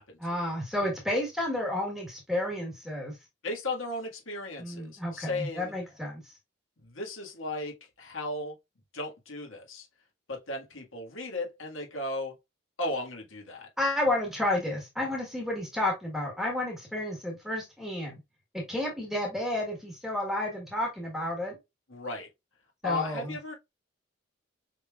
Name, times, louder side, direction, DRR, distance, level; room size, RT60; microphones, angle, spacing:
voice 1, 0.2-3.2 4.6-6.4 13.8-18.2 18.5-21.6 22.8-23.3, left 1 dB, ahead, 1.4 m, -31 dB
voice 2, 3.4-5.7 6.8-8.6 8.9-9.9 10.3-12.3 12.8-13.7 21.9-22.3 22.8-23.5, left 2 dB, 90° left, 1.9 m, -35 dB
5.7 x 3.5 x 2.4 m
head